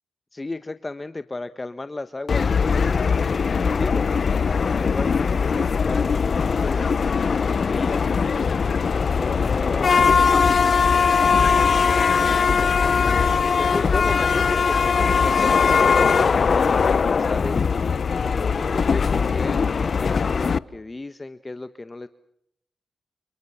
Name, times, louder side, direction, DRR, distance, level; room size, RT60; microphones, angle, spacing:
voice 1, 0.3-3.2 3.7-4.1 4.7-10.5 11.2-11.8 12.2-17.7 18.3-22.1, left 2 dB, 30° left, 11 dB, 1.5 m, -35 dB
sound 1, 2.3-20.6, left 5 dB, 60° left, 0.9 m, -20 dB
29.5 x 29.5 x 5.8 m, 0.73 s
supercardioid pair, 50°, 0 cm